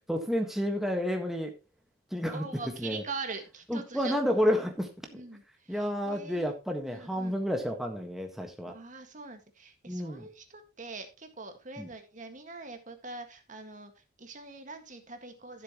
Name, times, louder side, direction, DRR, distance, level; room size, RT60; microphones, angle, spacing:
voice 1, 0.1-1.5 2.1-2.4 2.8-3.0 3.7-4.9 5.7-8.7 9.9-10.3 11.8-11.9, equal, ahead, 3 dB, 1.5 m, -30 dB
voice 2, 2.3-4.5 5.1-6.5 6.9-7.4 8.7-15.6, right 3 dB, 40° right, 7 dB, 1.8 m, -43 dB
13.5 x 7.7 x 3.0 m, 0.27 s
head